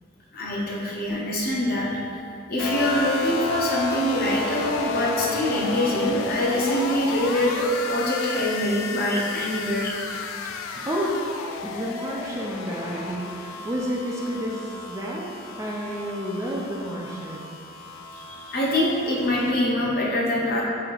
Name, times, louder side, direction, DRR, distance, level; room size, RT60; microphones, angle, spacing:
voice 1, 0.3-2.0 2.5-9.9 18.1-20.6, left 1 dB, 50° left, -4 dB, 0.7 m, -24 dB
sound 1, 2.6-19.5, left 4 dB, 85° left, 0.3 m, -33 dB
voice 2, 11.6-15.3 15.6-17.5, equal, 15° right, -3 dB, 0.3 m, -30 dB
4.4 x 2.7 x 3.9 m, 2.5 s
head